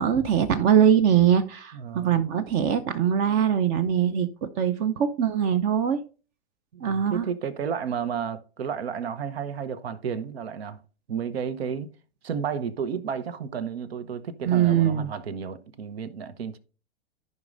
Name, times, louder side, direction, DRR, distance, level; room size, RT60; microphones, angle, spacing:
voice 1, 0.0-4.3 4.6-6.0 6.8-7.2 14.4-15.1, right 9 dB, 35° right, 0.7 m, -22 dB
voice 2, 1.7-2.2 6.7-10.8 11.1-11.9 12.2-16.6, right 7 dB, 70° right, 1.0 m, -32 dB
13.5 x 5.4 x 2.6 m
hypercardioid pair, 105°, 32 cm